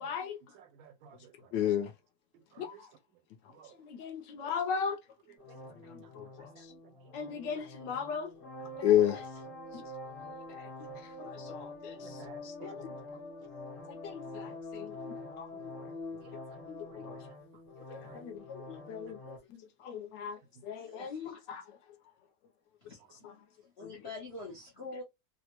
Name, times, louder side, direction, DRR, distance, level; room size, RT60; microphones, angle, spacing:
voice 1, 0.0-0.4 1.5-1.9 2.6-2.7 3.8-5.0 6.1-6.5 7.1-8.3 8.8-9.2 10.6-10.7 11.2-12.2 12.4-12.9 13.9-15.7 16.7-17.2 17.9-21.6 23.2-23.3 23.8-23.9, left 9 dB, 75° left, 1.2 m, -34 dB
voice 2, 0.5-1.7 2.5-2.9 3.5-3.8 4.4-4.5 5.5-5.6 5.9-7.1 12.0-12.8 16.2-16.6 16.9-17.0 17.8-18.2, right 8 dB, 80° right, 1.5 m, -56 dB
sound 1, 5.4-19.4, left 2 dB, 35° left, 1.0 m, -45 dB
voice 3, 20.8-21.4 22.9-23.5 23.8-25.0, left 2 dB, 60° left, 0.7 m, -45 dB
3.4 x 2.0 x 2.8 m
omnidirectional pair, 2.1 m